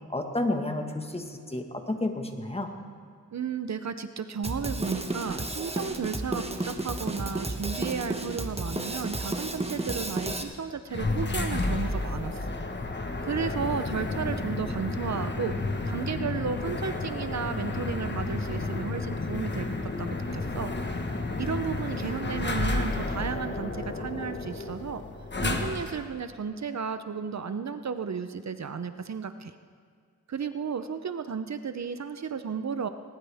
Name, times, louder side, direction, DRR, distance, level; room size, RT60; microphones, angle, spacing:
voice 1, 0.1-2.7, left 2 dB, 20° left, 4 dB, 1.6 m, -31 dB
voice 2, 3.3-12.6 13.2-15.6 15.9-20.7 21.4-25.0 25.4-29.5 30.3-32.9, right 6 dB, 60° right, 10 dB, 0.7 m, -33 dB
Drum kit, 4.4-10.4, right 2 dB, 20° right, 1.2 m, -32 dB
sound 1, 10.9-26.1, left 2 dB, 35° left, 1.4 m, -31 dB
20.0 x 19.5 x 3.5 m, 2.1 s
wide cardioid pair, 90°, 31 cm